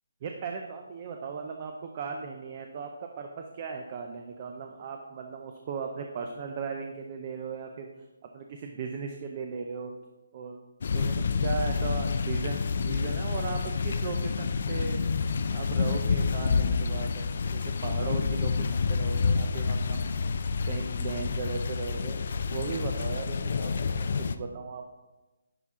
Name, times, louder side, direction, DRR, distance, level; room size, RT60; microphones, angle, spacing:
voice 1, 0.2-7.9 8.3-9.9 10.3-10.6 10.9-12.6 12.8-15.0 15.5-20.0 20.6-24.9, right 5 dB, 25° right, 3 dB, 0.4 m, -37 dB
sound 1, 10.8-24.4, left 5 dB, 40° left, 0.3 m, -28 dB
10.5 x 4.2 x 3.6 m, 1.1 s
hypercardioid pair, 175°, 0 cm